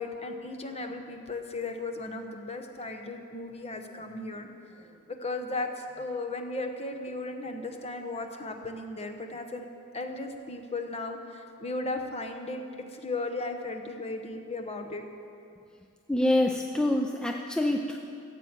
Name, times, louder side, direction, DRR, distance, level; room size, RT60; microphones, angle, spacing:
voice 1, 0.0-4.5 5.1-9.7 9.9-15.0, left 2 dB, 30° left, 5 dB, 1.0 m, -36 dB
voice 2, 16.1-18.0, left 1 dB, 5° left, 2 dB, 0.5 m, -26 dB
15.0 x 8.1 x 7.4 m, 2.5 s
head